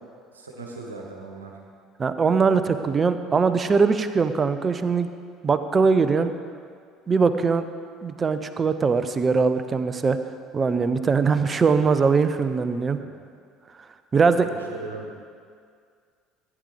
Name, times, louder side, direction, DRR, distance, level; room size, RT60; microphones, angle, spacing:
voice 1, 0.3-1.5 13.0-13.1 14.2-15.3, right 2 dB, 80° right, 0 dB, 1.3 m, -38 dB
voice 2, 2.0-5.1 5.4-6.3 7.1-7.6 8.0-10.2 10.5-13.0 14.1-14.5, right 5 dB, 30° right, 11 dB, 0.6 m, -21 dB
14.5 x 9.8 x 3.4 m, 2.1 s
figure-of-eight pair, 60°, 0 cm